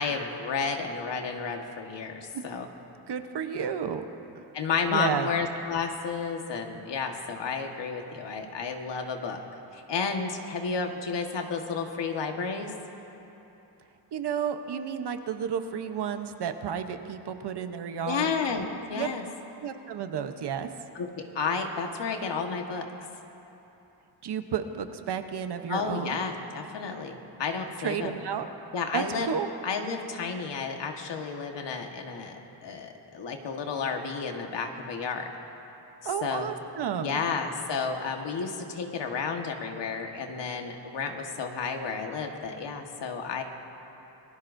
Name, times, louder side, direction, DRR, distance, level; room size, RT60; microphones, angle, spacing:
voice 1, 0.0-2.7 4.5-9.4 9.7-12.7 18.0-19.2 20.9-22.9 25.7-28.1 28.7-29.3 29.6-35.3 36.2-36.5 37.0-43.4, left 5 dB, 75° left, 3 dB, 1.6 m, -32 dB
voice 2, 3.1-4.0 4.3-4.5 4.9-5.3 14.1-18.3 18.9-19.1 19.6-20.7 24.2-26.2 27.8-28.5 28.9-29.5 36.0-37.2, right 8 dB, 65° right, 7 dB, 1.0 m, -32 dB
27.0 x 20.0 x 2.7 m, 3.0 s
wide cardioid pair, 130°, 43 cm